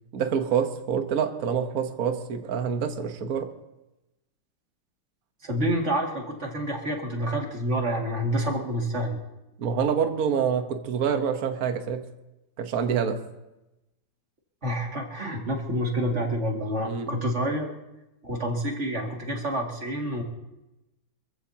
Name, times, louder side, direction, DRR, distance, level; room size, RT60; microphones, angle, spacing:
voice 1, 0.1-3.5 9.6-12.0 12.6-13.2 16.8-17.1, right 7 dB, 50° right, 6 dB, 1.4 m, -26 dB
voice 2, 5.4-9.2 14.6-17.7 18.2-20.2, right 1 dB, 35° right, 0 dB, 2.6 m, -28 dB
27.0 x 15.0 x 2.9 m, 0.96 s
omnidirectional pair, 2.3 m